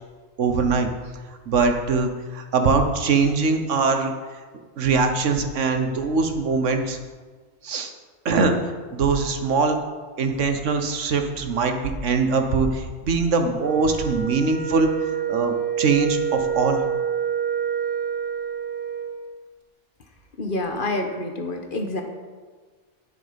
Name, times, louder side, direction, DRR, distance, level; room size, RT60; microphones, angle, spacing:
voice 1, 0.4-0.9 1.5-4.1 4.8-7.0 7.6-7.9 8.2-8.6 8.9-9.7 10.2-14.9 15.3-16.8, right 4 dB, 90° right, 6 dB, 1.4 m, -22 dB
Wind instrument woodwind instrument, 13.6-19.2, right 7 dB, 50° right, 1.2 m, -27 dB
voice 2, 20.4-22.0, left 2 dB, 45° left, 4 dB, 1.3 m, -27 dB
10.0 x 9.2 x 5.2 m, 1.5 s
omnidirectional pair, 1.2 m